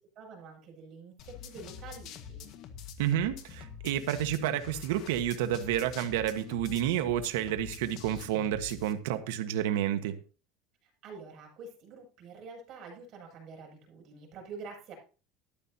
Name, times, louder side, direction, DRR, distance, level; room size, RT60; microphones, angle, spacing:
voice 1, 0.2-2.5 10.8-14.9, right 4 dB, 45° right, 7.3 m, -47 dB
sound 1, 1.2-8.9, left 7 dB, 50° left, 1.6 m, -46 dB
voice 2, 3.0-10.2, right 11 dB, 85° right, 1.4 m, -30 dB
13.5 x 12.0 x 2.9 m
supercardioid pair, 140°, 0 cm